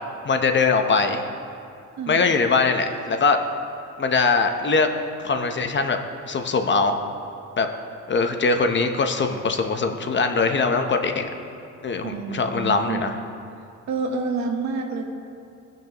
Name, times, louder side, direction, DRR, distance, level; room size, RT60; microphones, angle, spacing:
voice 1, 0.2-1.3 2.1-3.4 4.0-4.9 5.2-6.0 6.3-7.0 7.6-7.7 8.1-11.3 11.8-13.2, left 4 dB, 40° left, 6 dB, 0.8 m, -21 dB
voice 2, 2.0-2.3 12.0-13.1 13.9-15.0, right 4 dB, 70° right, 3 dB, 1.2 m, -28 dB
16.0 x 6.1 x 2.9 m, 2.5 s
cardioid pair, 90°, 30 cm